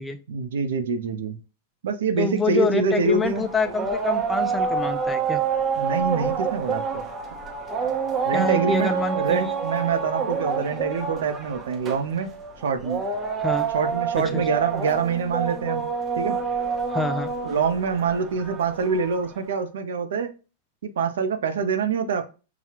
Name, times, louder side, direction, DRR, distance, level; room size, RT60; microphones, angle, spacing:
voice 1, 0.3-1.4 1.8-3.5 5.8-7.0 8.2-12.3 12.6-13.0 13.7-15.8 16.2-16.4 17.4-20.3 20.8-22.2, right 5 dB, 80° right, 8 dB, 0.7 m, -25 dB
voice 2, 2.2-5.4 8.3-9.4 13.4-13.7 14.2-14.4 16.9-17.3, left 3 dB, 10° left, 8 dB, 0.5 m, -26 dB
sound 1, 3.0-19.4, right 6 dB, 20° right, 0.8 m, -28 dB
5.9 x 2.3 x 2.9 m, 0.33 s
hypercardioid pair, 135°, 0 cm